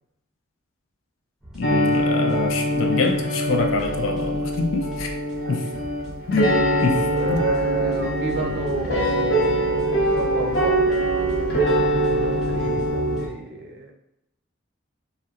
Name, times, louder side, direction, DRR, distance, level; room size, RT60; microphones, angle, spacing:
sound 1, 1.4-13.3, right 1 dB, 5° right, 0.5 m, -40 dB
voice 1, 1.5-5.2 5.5-5.7 6.3-6.5 6.8-7.4, left 4 dB, 90° left, 4 dB, 0.4 m, -25 dB
sound 2, 1.6-13.3, right 1 dB, 55° left, 0.6 m, -23 dB
voice 2, 5.4-5.8 7.1-10.8 11.5-13.9, right 3 dB, 55° right, 1 dB, 0.4 m, -30 dB
sound 3, 6.5-12.9, right 1 dB, 75° left, 0.9 m, -37 dB
2.7 x 2.2 x 2.3 m, 0.83 s
head